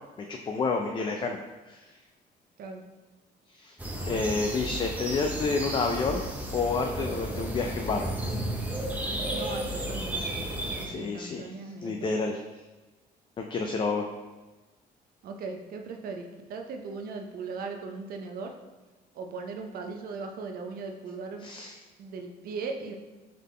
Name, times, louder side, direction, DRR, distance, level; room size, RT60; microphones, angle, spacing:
voice 1, 0.3-1.4 1.7-1.9 3.5-3.8 4.0-6.3 6.5-8.1 10.8-11.5 11.8-12.4 13.4-14.1 21.4-21.8, left 4 dB, 30° left, 3 dB, 0.3 m, -29 dB
sound 1, 3.8-10.9, right 1 dB, 10° right, 0.7 m, -33 dB
voice 2, 9.3-10.4 10.8-12.1 15.2-18.5 19.1-21.5 22.0-22.9, right 4 dB, 60° right, 4 dB, 0.6 m, -38 dB
3.8 x 3.5 x 3.3 m, 1.2 s
cardioid pair, 110°, 17 cm